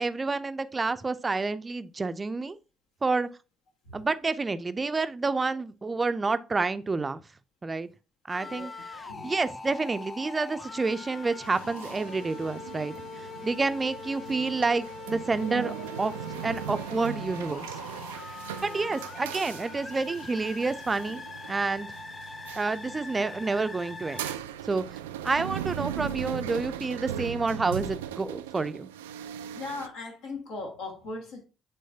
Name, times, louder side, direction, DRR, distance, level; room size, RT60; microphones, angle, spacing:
voice 1, 0.0-2.6 3.0-3.3 3.9-7.2 7.6-7.9 8.3-8.7 9.2-13.0 13.4-16.1 16.4-17.7 18.6-21.2 21.5-21.9 22.6-24.3 24.7-25.0 25.2-28.9, right 3 dB, 25° right, 0.6 m, -29 dB
sound 1, 8.3-24.3, left 4 dB, 30° left, 0.6 m, -42 dB
voice 2, 8.4-8.7 9.0-9.4 13.4-13.5 18.4-18.9 29.5-31.4, left 3 dB, 65° left, 1.8 m, -39 dB
sound 2, 11.4-29.9, right 11 dB, 75° right, 0.3 m, -39 dB
9.2 x 3.8 x 2.7 m
figure-of-eight pair, 45°, 0 cm